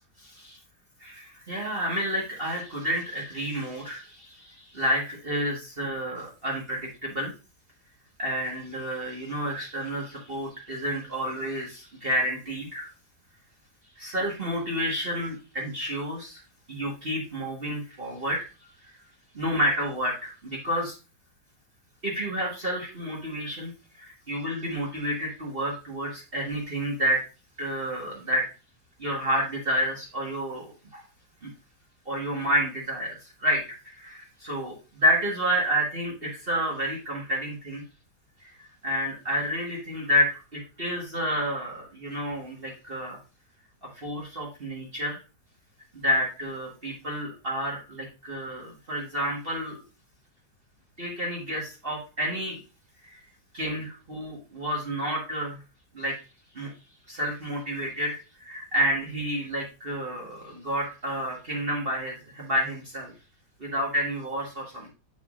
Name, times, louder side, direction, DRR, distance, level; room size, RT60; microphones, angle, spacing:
voice 1, 0.2-0.6 1.0-7.3 8.2-12.9 14.0-16.4 16.7-18.5 18.8-18.9 19.3-20.9 22.0-27.2 27.6-28.5 29.0-31.0 31.4-31.5 32.0-37.8 38.4-43.2 43.9-45.2 45.9-49.8 51.0-52.6 53.0-53.2 53.5-55.6 55.9-56.2 56.5-56.7 57.1-63.1 63.6-64.9, equal, 35° right, -3 dB, 1.6 m, -30 dB
8.1 x 6.9 x 2.5 m, 0.32 s
omnidirectional pair, 1.8 m